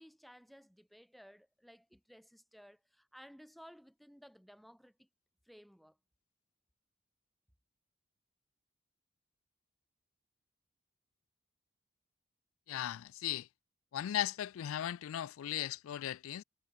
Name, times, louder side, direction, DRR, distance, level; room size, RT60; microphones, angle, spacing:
voice 1, 0.0-5.1 5.5-6.0, equal, ahead, 0.9 m, -57 dB
voice 2, 12.7-13.5 13.9-16.4, left 11 dB, 85° left, 0.3 m, -37 dB
head